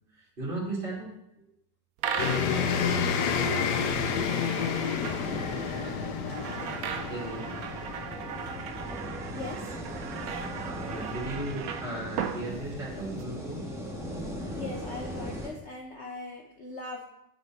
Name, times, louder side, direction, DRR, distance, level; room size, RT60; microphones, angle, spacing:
voice 1, 0.4-1.1 7.1-7.5 10.6-13.6, right 2 dB, 30° right, -6 dB, 2.3 m, -36 dB
sound 1, 2.0-13.2, right 7 dB, 65° right, 1.0 m, -37 dB
sound 2, 2.2-8.7, left 6 dB, 70° left, 1.3 m, -30 dB
sound 3, 5.0-15.5, equal, ahead, 1.4 m, -39 dB
voice 2, 9.3-9.8 10.4-10.6 14.5-17.1, left 3 dB, 50° left, -1 dB, 1.0 m, -40 dB
8.3 x 6.3 x 4.4 m, 0.82 s
omnidirectional pair, 1.9 m